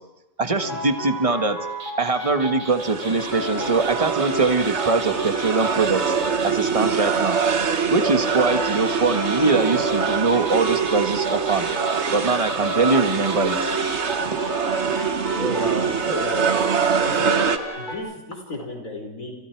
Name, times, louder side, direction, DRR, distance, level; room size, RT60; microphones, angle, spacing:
voice 1, 0.4-1.6 2.0-6.1 6.4-7.4 7.9-11.7 12.1-13.6, right 3 dB, 25° right, 7 dB, 1.5 m, -22 dB
sound 1, 0.6-17.9, left 1 dB, 35° left, 6.9 m, -33 dB
sound 2, 1.7-6.7 8.0-14.2, right 3 dB, 85° right, 2.9 m, -39 dB
sound 3, 2.7-17.6, right 6 dB, 55° right, 1.5 m, -24 dB
voice 2, 15.4-16.6 17.0-17.4 17.7-19.4, equal, 90° left, 2 dB, 5.3 m, -32 dB
30.0 x 29.0 x 4.7 m, 0.90 s
omnidirectional pair, 1.4 m